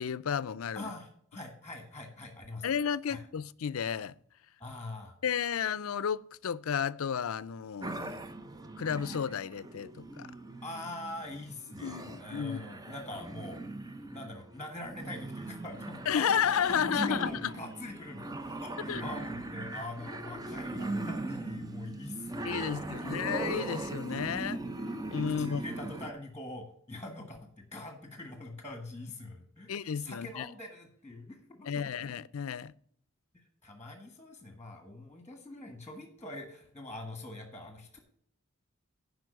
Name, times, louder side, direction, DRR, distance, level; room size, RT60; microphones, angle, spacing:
voice 1, 0.0-0.9 2.6-4.1 5.2-8.3 8.8-10.3 11.8-12.7 16.1-17.5 18.9-19.0 22.4-24.6 25.1-25.6 29.7-30.5 31.6-32.7, left 7 dB, 75° left, 0.5 m, -32 dB
voice 2, 0.7-2.8 3.1-3.2 4.6-5.1 10.6-13.6 14.1-16.4 16.6-23.1 25.4-27.4 27.7-31.9 33.6-38.0, left 2 dB, 10° left, 1.5 m, -44 dB
sound 1, 7.8-26.1, right 2 dB, 20° right, 0.6 m, -39 dB
11.0 x 5.2 x 6.4 m
head